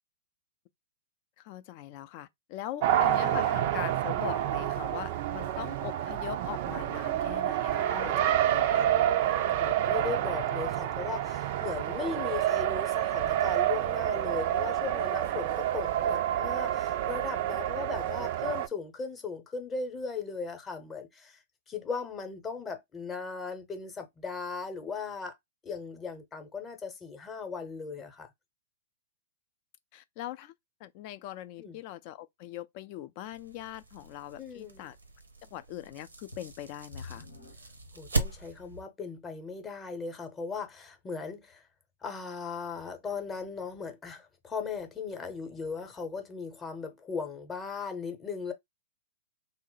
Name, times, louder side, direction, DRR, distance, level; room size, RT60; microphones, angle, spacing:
voice 1, 1.4-8.8 29.9-30.5 30.8-35.0 35.4-37.3, left 13 dB, 45° left, 0.4 m, -41 dB
Race car auto racing, 2.8-18.7, right 11 dB, 50° right, 0.3 m, -28 dB
voice 2, 9.2-21.4 21.7-25.4 25.6-28.3 31.6-31.8 34.4-34.9 37.9-41.6 42.0-48.5, left 5 dB, 20° left, 0.8 m, -38 dB
sound 1, 33.2-38.8, right 3 dB, 90° right, 0.7 m, -38 dB
sound 2, 36.3-38.7 39.4-39.5 40.1-40.2, left 3 dB, 90° left, 1.0 m, -49 dB
2.9 x 2.0 x 3.8 m
hypercardioid pair, 115°, 0 cm